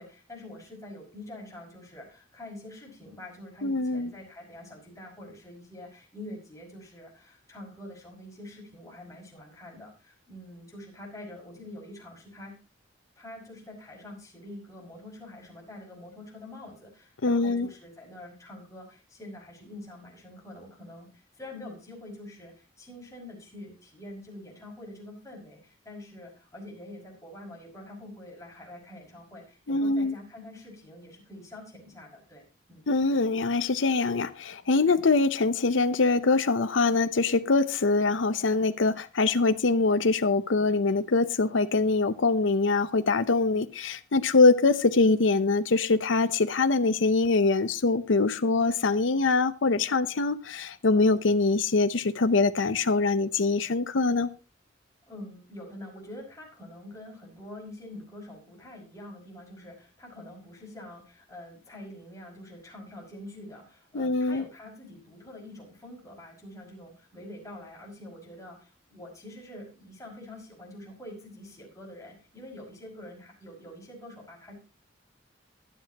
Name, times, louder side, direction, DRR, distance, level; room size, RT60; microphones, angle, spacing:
voice 1, 0.0-12.5 13.2-32.9 55.1-74.5, left 1 dB, 15° left, 5.6 m, -45 dB
voice 2, 3.6-4.1 17.2-17.7 29.7-30.1 32.9-54.3 63.9-64.4, left 3 dB, 70° left, 0.7 m, -24 dB
23.5 x 7.9 x 2.9 m
head